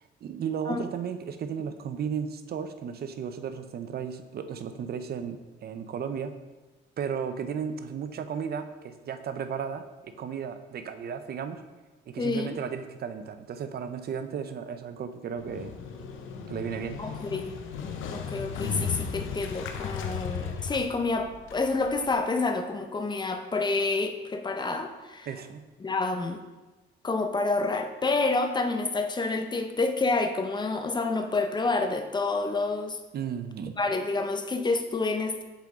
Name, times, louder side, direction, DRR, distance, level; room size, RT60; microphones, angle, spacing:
voice 1, 0.2-6.3 7.0-11.6 12.1-15.7 16.5-17.0 25.3-25.7 33.1-33.8, right 7 dB, 50° right, 9 dB, 0.6 m, -34 dB
voice 2, 12.2-12.6 17.0-17.5 18.1-25.3 25.8-26.4 27.0-33.0 33.8-35.4, left 3 dB, 20° left, 6 dB, 0.6 m, -28 dB
Motorcycle, 15.4-22.2, left 6 dB, 85° left, 0.7 m, -35 dB
7.4 x 3.8 x 3.6 m, 1.2 s
cardioid pair, 90°, 20 cm